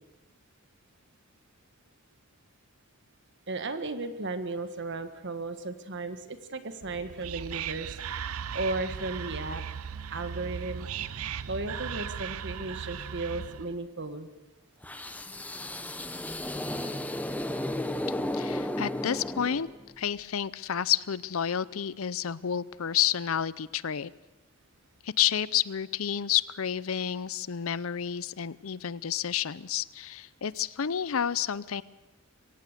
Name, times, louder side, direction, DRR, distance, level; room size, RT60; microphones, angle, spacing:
voice 1, 3.5-8.0 8.5-9.6 10.1-10.9 11.5-14.3, right 3 dB, 55° right, 9 dB, 1.5 m, -35 dB
Whispering, 6.8-13.7, right 7 dB, 80° right, 0.6 m, -37 dB
sound 1, 14.8-19.9, left 1 dB, 5° left, 0.9 m, -34 dB
voice 2, 18.3-19.7 20.0-24.1 25.0-31.8, left 9 dB, 70° left, 19 dB, 0.6 m, -30 dB
23.0 x 17.5 x 6.7 m, 1.1 s
head